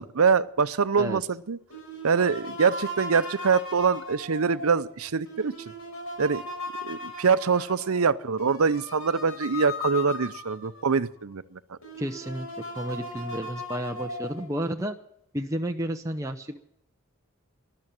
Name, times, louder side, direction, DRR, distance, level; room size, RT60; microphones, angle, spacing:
voice 1, 0.0-1.6 2.0-5.7 6.2-6.4 6.8-11.8, right 5 dB, 85° right, 14 dB, 0.7 m, -24 dB
sound 1, 1.7-10.9 11.4-11.5 11.8-14.5, left 2 dB, 80° left, 6.1 m, -38 dB
voice 2, 12.0-12.5 12.7-15.0 15.3-16.6, right 1 dB, 15° right, 3 dB, 0.7 m, -31 dB
12.5 x 12.0 x 8.8 m, 0.77 s
head